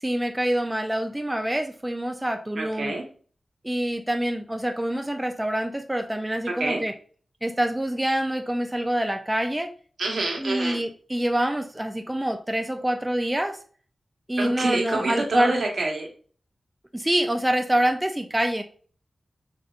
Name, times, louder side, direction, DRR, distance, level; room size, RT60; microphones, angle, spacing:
voice 1, 0.0-2.9 3.6-6.9 7.4-9.7 10.4-13.6 14.3-15.5 16.9-18.6, right 1 dB, 15° right, 5 dB, 0.4 m, -26 dB
voice 2, 2.6-3.0 6.5-6.8 10.0-10.8 14.4-16.1, right 2 dB, 80° right, 1 dB, 1.1 m, -27 dB
4.8 x 2.7 x 2.4 m, 0.43 s
cardioid pair, 55°, 0 cm